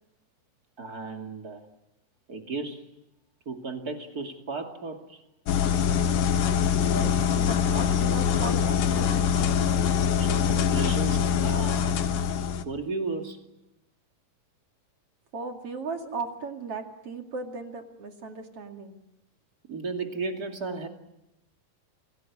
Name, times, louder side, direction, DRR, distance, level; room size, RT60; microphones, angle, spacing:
voice 1, 0.8-1.7 2.3-2.9 3.5-5.2 10.2-12.0 12.7-13.4 16.0-16.2 19.7-20.9, right 3 dB, 30° right, 4 dB, 2.5 m, -34 dB
sound 1, 5.5-12.6, left 8 dB, 65° left, 2.5 m, -24 dB
voice 2, 6.8-9.3 15.3-19.0, right 4 dB, 45° right, 4 dB, 2.9 m, -37 dB
28.0 x 19.0 x 9.8 m, 0.87 s
omnidirectional pair, 4.4 m